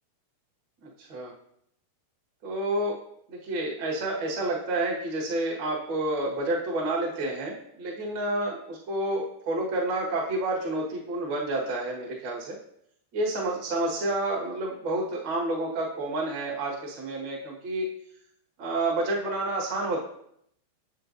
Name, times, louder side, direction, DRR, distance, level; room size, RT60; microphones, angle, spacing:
voice 1, 1.0-1.3 2.4-3.0 3.3-12.5 13.1-17.9 18.6-20.0, right 2 dB, 75° right, -4 dB, 1.0 m, -29 dB
7.2 x 6.7 x 2.6 m, 0.72 s
omnidirectional pair, 4.8 m